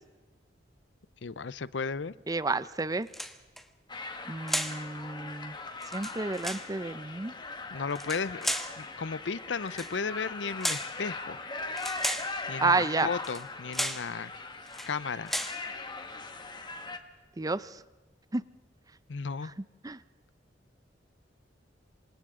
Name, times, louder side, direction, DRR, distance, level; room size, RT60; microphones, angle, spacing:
voice 1, 1.2-2.1 7.7-11.4 12.5-14.3 14.9-15.3 19.1-19.5, left 5 dB, 75° left, 18 dB, 0.6 m, -34 dB
voice 2, 2.3-3.1 4.3-5.5 5.9-7.3 12.6-13.1 17.4-17.7 18.3-18.4 19.8-20.0, right 3 dB, 20° right, 16 dB, 0.6 m, -30 dB
sound 1, 3.1-3.6 4.5-4.8 5.8-6.7 7.9-8.8 9.7-9.9 10.6-11.0 11.8-12.3 13.2-13.5 13.7-14.1 14.7-14.9 15.3-15.6, equal, ahead, 1.3 m, -34 dB
sound 2, 3.9-17.0, left 3 dB, 25° left, 1.6 m, -40 dB
28.0 x 25.5 x 3.8 m, 1.2 s
head